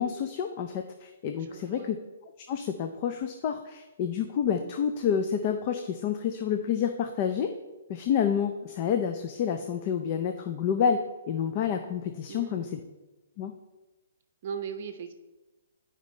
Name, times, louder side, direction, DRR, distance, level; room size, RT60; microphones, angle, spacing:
voice 1, 0.0-2.0 2.5-7.5 7.9-11.0 11.3-12.8 13.4-13.5, left 8 dB, 30° left, 7 dB, 0.4 m, -29 dB
voice 2, 1.4-1.9 12.3-12.8 14.4-15.1, right 7 dB, 40° right, 8 dB, 0.7 m, -38 dB
11.0 x 5.1 x 3.2 m, 1.1 s
hypercardioid pair, 165°, 0 cm